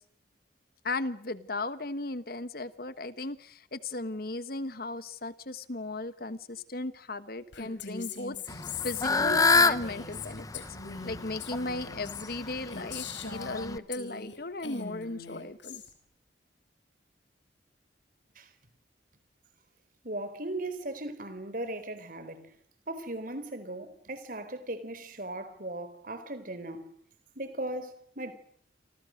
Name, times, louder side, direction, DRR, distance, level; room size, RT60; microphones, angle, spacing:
voice 1, 0.8-10.6 11.0-15.8, left 2 dB, 50° left, 1.3 m, -36 dB
Female speech woman speaking, 7.5-14.4 14.6-15.9, left 6 dB, 80° left, 5.0 m, -41 dB
Fowl / Bird, 8.5-13.8, left 3 dB, 20° left, 1.0 m, -28 dB
voice 2, 20.0-22.5 22.9-26.9 27.4-28.3, right 1 dB, 45° right, 4.2 m, -38 dB
29.0 x 25.0 x 6.5 m
head